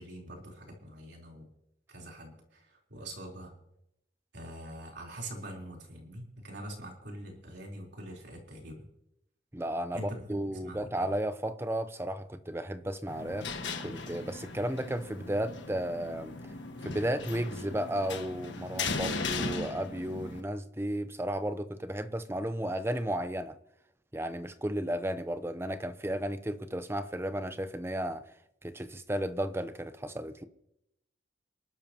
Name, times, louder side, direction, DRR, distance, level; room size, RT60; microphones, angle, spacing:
voice 1, 0.0-1.5 1.9-3.5 4.3-8.8 9.9-11.1, right 1 dB, 70° right, 3.8 m, -44 dB
voice 2, 9.5-13.5 13.8-16.3 16.8-23.5 24.1-28.2 28.6-30.4, right 1 dB, 15° right, 0.7 m, -34 dB
sound 1, 13.1-20.4, left 4 dB, 80° left, 1.5 m, -38 dB
27.5 x 12.0 x 2.9 m
head